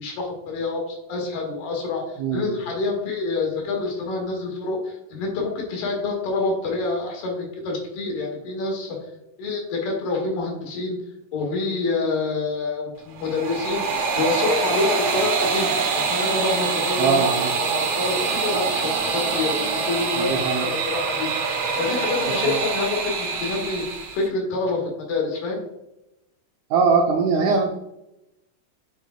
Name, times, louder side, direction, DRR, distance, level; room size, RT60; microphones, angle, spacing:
voice 1, 0.0-9.0 9.4-11.0 11.3-18.2 18.4-23.8 24.1-25.6, left 3 dB, 70° left, 0 dB, 3.3 m, -27 dB
voice 2, 2.2-2.6 17.0-17.5 20.2-20.7 22.4-22.6 26.7-27.6, right 5 dB, 85° right, 1 dB, 1.7 m, -21 dB
sound 1, 13.1-24.3, right 5 dB, 65° right, 2.1 m, -25 dB
8.1 x 6.0 x 2.2 m, 0.88 s
omnidirectional pair, 4.2 m